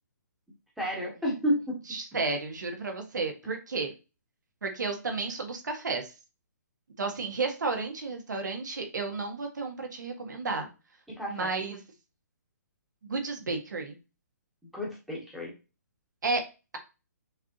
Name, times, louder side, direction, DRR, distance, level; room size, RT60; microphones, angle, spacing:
voice 1, 0.8-1.8 11.2-11.5 14.7-15.5, equal, ahead, -4 dB, 1.0 m, -30 dB
voice 2, 1.9-3.9 4.6-6.1 7.0-10.7 11.3-11.8 13.0-14.0 16.2-16.5, right 3 dB, 80° right, 4 dB, 1.6 m, -32 dB
5.7 x 3.2 x 2.9 m, 0.30 s
hypercardioid pair, 170°, 10 cm